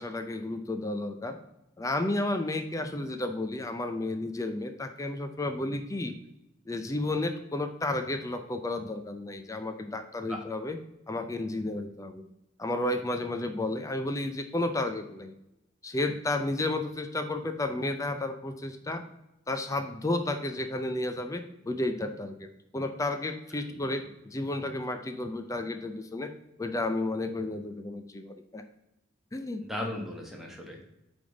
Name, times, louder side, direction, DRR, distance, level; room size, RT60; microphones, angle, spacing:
voice 1, 0.0-1.4 1.8-6.1 6.7-10.8 11.1-12.2 12.6-15.3 15.8-19.0 19.5-26.3 26.6-28.6 29.3-29.6, left 2 dB, 15° left, 8 dB, 0.4 m, -32 dB
voice 2, 29.6-30.8, left 1 dB, ahead, -1 dB, 1.2 m, -37 dB
8.5 x 3.5 x 3.9 m, 0.87 s
head